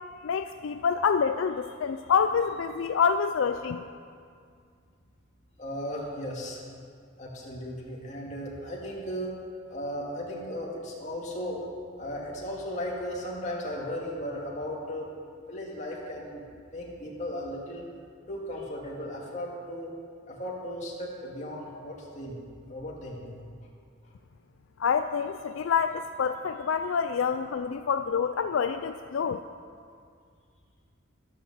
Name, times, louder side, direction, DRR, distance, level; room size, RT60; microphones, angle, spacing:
voice 1, 0.2-3.9 24.8-29.4, left 6 dB, 70° left, 9 dB, 0.4 m, -27 dB
voice 2, 5.6-6.6 7.2-9.3 9.7-11.6 12.0-15.1 15.5-16.4 16.7-17.9 18.3-19.9 20.3-23.4, equal, 35° left, -3 dB, 2.2 m, -36 dB
11.0 x 9.8 x 6.9 m, 2.2 s
head